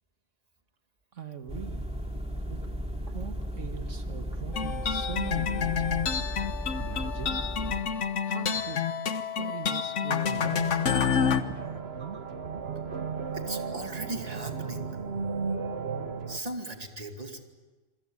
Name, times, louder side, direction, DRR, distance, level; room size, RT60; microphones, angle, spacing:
voice 1, 1.1-1.8 2.5-2.6 3.1-6.0 6.7-7.4 8.3-8.8 9.4-12.2, right 7 dB, 75° right, 7 dB, 1.8 m, -41 dB
sound 1, 1.5-7.8, equal, 5° right, 2.6 m, -35 dB
sound 2, 4.5-11.4, left 7 dB, 70° left, 1.4 m, -28 dB
sound 3, 10.3-16.4, right 5 dB, 55° right, 1.5 m, -35 dB
voice 2, 13.3-14.9 16.3-17.4, right 2 dB, 30° right, 5 dB, 2.4 m, -37 dB
27.5 x 23.0 x 8.7 m, 1.3 s
omnidirectional pair, 1.3 m